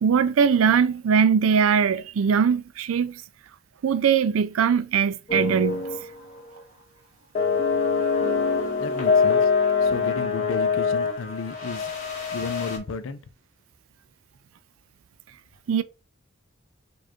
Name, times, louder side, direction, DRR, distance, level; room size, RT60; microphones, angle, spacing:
voice 1, 0.0-3.2 3.8-5.9 15.7-15.8, right 6 dB, 90° right, 0.4 m, -21 dB
sound 1, 5.3-6.1 6.4-6.6 7.3-12.8, left 5 dB, 40° left, 1.6 m, -24 dB
voice 2, 8.8-9.5 9.8-11.9 12.3-13.2, left 4 dB, 70° left, 0.5 m, -33 dB
4.8 x 2.5 x 4.3 m
head